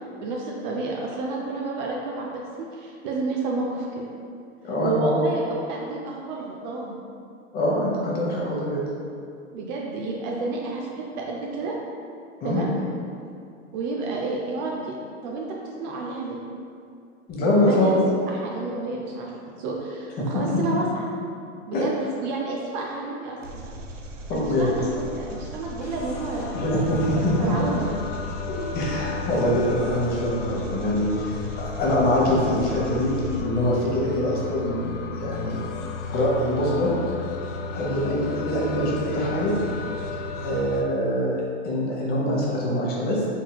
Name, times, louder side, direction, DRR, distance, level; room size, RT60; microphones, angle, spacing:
voice 1, 0.2-2.3 2.6-4.0 4.8-7.0 9.5-11.7 12.4-12.7 13.7-15.0 15.2-16.4 17.4-18.0 18.2-19.3 19.6-21.1 21.7-21.9 22.2-23.6 24.3-26.6 27.4-28.0, right 3 dB, 40° right, -2 dB, 0.5 m, -30 dB
voice 2, 4.6-5.2 7.5-8.8 12.4-12.6 17.3-17.9 20.2-20.4 21.7-21.9 24.3-24.7 26.5-27.5 28.5-31.2 31.6-35.6 36.1-36.9 37.7-39.5 40.4-41.3 41.6-43.2, left 1 dB, 25° left, -4 dB, 0.8 m, -24 dB
Engine, 23.4-33.4, equal, 90° right, 0.5 m, -39 dB
sound 1, 24.9-40.8, left 4 dB, 80° left, 0.5 m, -34 dB
4.0 x 3.8 x 2.2 m, 2.4 s
hypercardioid pair, 115°, 36 cm